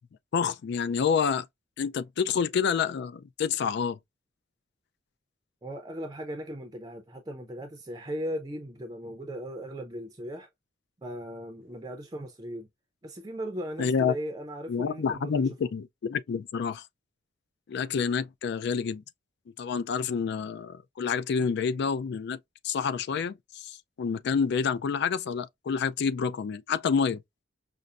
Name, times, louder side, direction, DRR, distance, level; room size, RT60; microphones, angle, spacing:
voice 1, 0.3-1.5 1.8-4.0 13.8-14.1 14.7-16.8 17.7-19.0 19.6-22.4 22.6-27.2, left 6 dB, 60° left, 0.3 m, -28 dB
voice 2, 5.6-10.5 11.0-12.7 13.0-15.7, equal, 20° right, 0.5 m, -37 dB
5.3 x 2.0 x 2.4 m
head